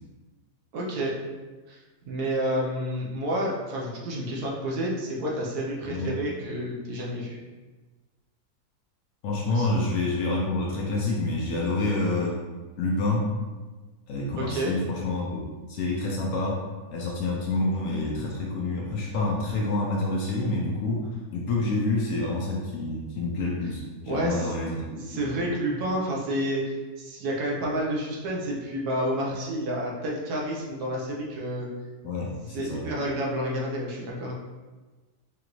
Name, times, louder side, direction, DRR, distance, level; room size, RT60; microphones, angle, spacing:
voice 1, 0.7-1.2 1.7-1.8 2.0-7.4 9.5-9.7 14.3-14.7 24.1-24.5 24.9-31.7 32.5-34.3, right 1 dB, 75° right, -3 dB, 1.3 m, -29 dB
voice 2, 9.2-12.4 12.8-13.3 14.1-16.6 16.9-25.2 32.0-32.8, left 2 dB, 65° left, -2 dB, 0.9 m, -28 dB
4.9 x 2.6 x 3.0 m, 1.3 s
omnidirectional pair, 1.7 m